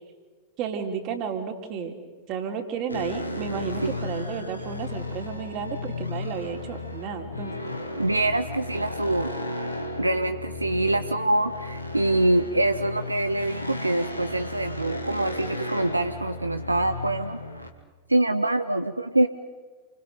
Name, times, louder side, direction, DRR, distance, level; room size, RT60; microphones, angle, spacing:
voice 1, 0.6-1.9 2.3-7.5, right 6 dB, 40° right, 4 dB, 3.7 m, -32 dB
sound 1, 2.9-17.7, left 2 dB, 90° left, 2.3 m, -34 dB
voice 2, 8.0-9.3 10.0-17.4 18.1-19.3, right 1 dB, 85° right, 10 dB, 0.8 m, -25 dB
29.0 x 25.5 x 5.2 m, 1.4 s
figure-of-eight pair, 90°, 0 cm